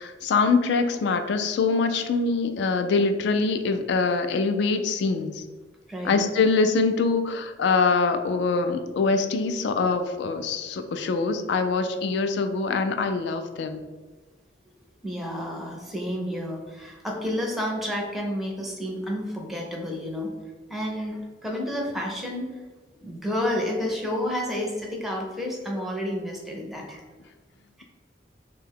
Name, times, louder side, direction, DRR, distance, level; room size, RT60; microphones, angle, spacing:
voice 1, 0.0-5.4 6.0-13.8, left 4 dB, 70° left, 8 dB, 0.3 m, -24 dB
voice 2, 15.0-20.3 20.7-22.5 23.0-27.2, left 1 dB, ahead, -1 dB, 0.5 m, -30 dB
2.7 x 2.2 x 3.3 m, 1.3 s
head